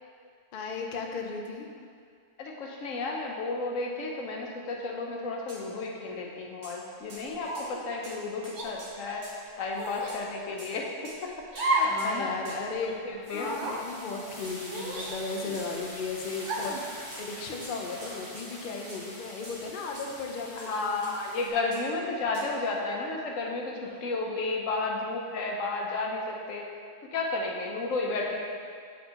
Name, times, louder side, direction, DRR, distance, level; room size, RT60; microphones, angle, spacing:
voice 1, 0.5-1.7 11.8-21.0 23.8-24.0, left 4 dB, 55° left, 2 dB, 0.7 m, -36 dB
voice 2, 2.4-9.2 9.6-10.9 11.6-12.4 12.7-13.5 20.6-23.7 24.0-26.6 27.1-28.5, left 3 dB, 90° left, 0 dB, 1.2 m, -32 dB
sound 1, 5.5-5.6 6.6-6.8 7.1-7.3 7.5-7.7 8.0-8.2 8.4-9.4 10.1-10.2 10.6-10.7 11.0-11.2 11.6-11.7 12.0-12.1 12.5-12.6 14.4-14.6 15.0-15.1 15.5-15.7 16.6-16.8 17.1-17.3 17.6-18.5 18.9-19.0 19.4-19.6 20.0-20.1 20.6-20.7 21.0-21.1 21.7-21.9 22.3-22.5, right 1 dB, 40° right, 1.0 m, -47 dB
sound 2, 7.4-7.8 8.5-8.7 9.7-10.2 11.5-12.0 12.4-12.5 13.3-13.8 14.7-15.6 16.4-16.8, right 1 dB, 65° right, 1.0 m, -31 dB
sound 3, 11.7-12.1 12.5-21.5, equal, 15° left, 1.4 m, -45 dB
8.3 x 4.4 x 2.9 m, 2.1 s
omnidirectional pair, 1.3 m